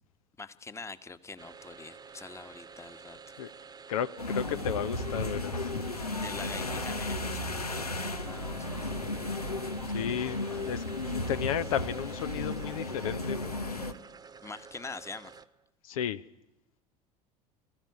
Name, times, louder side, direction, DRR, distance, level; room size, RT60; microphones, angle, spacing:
voice 1, 0.4-3.2 6.2-9.1 14.4-15.3, left 4 dB, 15° left, 13 dB, 1.2 m, -44 dB
sound 1, 1.4-15.7, right 5 dB, 20° right, 1.1 m, -50 dB
voice 2, 3.9-5.7 9.9-10.8 11.3-13.6 15.8-16.2, left 9 dB, 65° left, 13 dB, 0.7 m, -33 dB
sound 2, 4.2-13.9, left 2 dB, 90° left, 1.1 m, -34 dB
23.0 x 14.5 x 9.6 m, 0.88 s
figure-of-eight pair, 70°, 19 cm